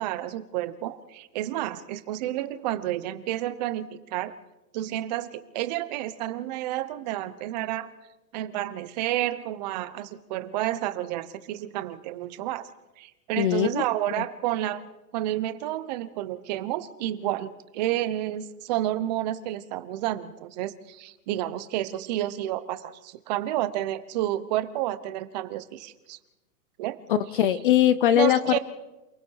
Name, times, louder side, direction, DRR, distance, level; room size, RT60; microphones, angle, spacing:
voice 1, 0.0-4.3 4.7-7.9 8.3-12.7 13.0-14.8 15.1-26.2 26.8-27.0 28.1-28.6, right 14 dB, 25° right, 13 dB, 0.9 m, -30 dB
voice 2, 13.4-13.8 27.1-28.6, left 11 dB, 35° left, 15 dB, 0.7 m, -21 dB
28.5 x 19.5 x 4.8 m, 1.0 s
hypercardioid pair, 165°, 48 cm